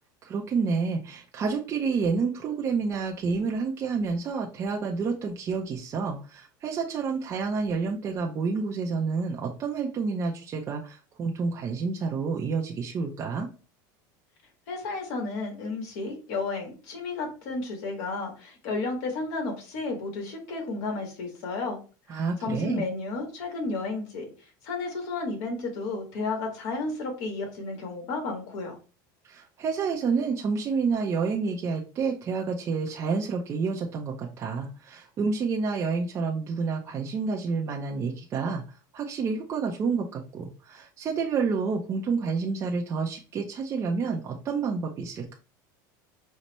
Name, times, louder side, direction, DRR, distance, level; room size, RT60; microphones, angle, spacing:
voice 1, 0.2-13.5 22.1-22.8 29.2-45.3, right 5 dB, 30° right, -1 dB, 0.5 m, -29 dB
voice 2, 14.7-21.8 22.1-24.3 24.6-28.8, left 3 dB, 65° left, 2 dB, 1.4 m, -32 dB
5.3 x 2.1 x 3.0 m, 0.35 s
supercardioid pair, 145°, 10 cm